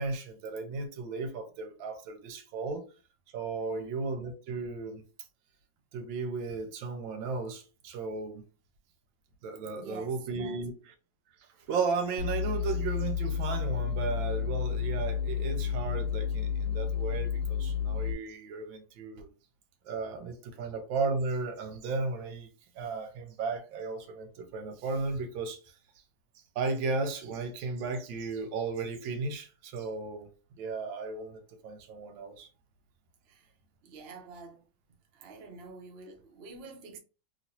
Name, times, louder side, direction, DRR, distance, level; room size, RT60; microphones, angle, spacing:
voice 1, 0.0-2.8 3.3-5.0 5.9-8.4 9.4-10.9 11.7-19.3 19.9-22.5 22.8-25.6 26.6-30.3 30.6-32.5, right 4 dB, 80° right, 1.4 m, -35 dB
voice 2, 3.5-3.9 9.7-10.6 33.2-33.5 33.8-34.7 35.1-37.0, right 4 dB, 55° right, 0.6 m, -47 dB
sound 1, 12.2-18.1, left 7 dB, 75° left, 1.3 m, -31 dB
3.0 x 2.9 x 2.7 m
omnidirectional pair, 2.1 m